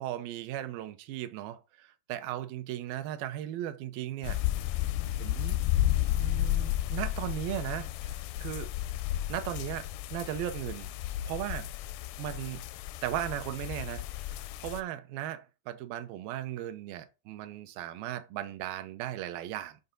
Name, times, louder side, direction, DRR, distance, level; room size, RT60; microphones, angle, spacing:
voice 1, 0.0-4.4 5.2-5.6 6.2-8.7 9.3-10.9 11.3-11.7 12.2-12.6 13.0-19.8, right 12 dB, 80° right, 2.5 m, -37 dB
sound 1, 4.2-14.8, left 14 dB, 80° left, 2.1 m, -32 dB
6.8 x 5.4 x 3.8 m
omnidirectional pair, 4.4 m